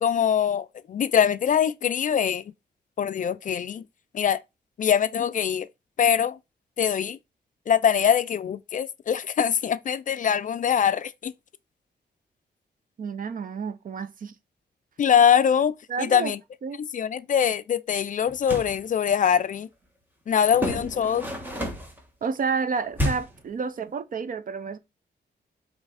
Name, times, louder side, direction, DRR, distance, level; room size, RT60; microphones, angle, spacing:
voice 1, 0.0-2.4 3.0-3.8 4.1-4.4 4.8-5.7 6.0-6.4 6.8-7.2 7.7-11.3 15.0-16.4 16.9-19.7 20.3-21.3, left 8 dB, 45° left, 0.4 m, -23 dB
voice 2, 13.0-14.3 15.9-16.3 16.6-16.8 22.2-24.8, right 5 dB, 50° right, 0.5 m, -30 dB
sound 1, 18.3-18.8 20.5-22.0 22.9-23.5, equal, 10° right, 1.3 m, -30 dB
8.1 x 3.2 x 4.0 m
wide cardioid pair, 180°, 18 cm